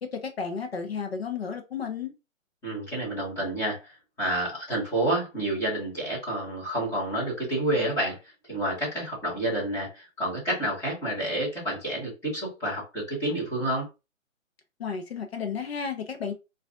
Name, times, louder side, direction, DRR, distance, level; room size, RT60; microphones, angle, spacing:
voice 1, 0.0-2.1 14.8-16.3, left 6 dB, 50° left, 0.7 m, -33 dB
voice 2, 2.6-3.9 4.2-8.2 8.5-13.9, right 1 dB, 5° left, 1.3 m, -29 dB
4.5 x 2.5 x 2.4 m
hypercardioid pair, 155°, 40 cm